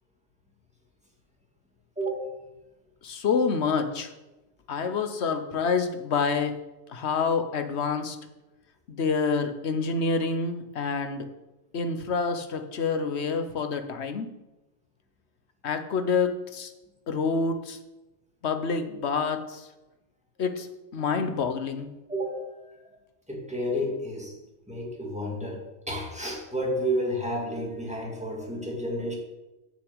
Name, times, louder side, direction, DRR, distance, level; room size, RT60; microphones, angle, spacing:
voice 1, 2.0-2.3 22.1-23.0 23.3-24.4 24.7-29.2, equal, 5° right, -1 dB, 2.1 m, -31 dB
voice 2, 3.0-4.1 4.7-6.6 6.9-8.2 8.9-11.3 11.7-14.3 15.6-16.7 17.1-17.8 18.4-19.7 20.4-20.7 20.9-21.9, left 5 dB, 65° left, 8 dB, 1.2 m, -27 dB
8.1 x 6.9 x 7.9 m, 1.0 s
omnidirectional pair, 1.2 m